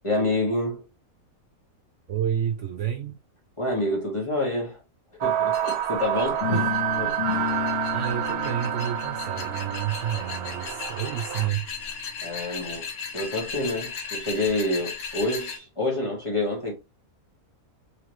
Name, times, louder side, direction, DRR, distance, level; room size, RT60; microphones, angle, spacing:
voice 1, 0.0-0.9 3.6-4.8 5.2-6.7 7.0-7.2 12.2-12.9 13.1-16.7, left 1 dB, 20° left, 1.4 m, -27 dB
voice 2, 2.1-3.2 6.5-6.6 7.9-11.7, right 10 dB, 65° right, 0.8 m, -29 dB
sound 1, 5.2-11.5, right 11 dB, 85° right, 1.1 m, -28 dB
sound 2, 5.5-15.6, left 5 dB, 90° left, 1.4 m, -37 dB
sound 3, 6.4-12.3, left 7 dB, 55° left, 1.2 m, -34 dB
3.8 x 3.3 x 3.1 m
omnidirectional pair, 1.5 m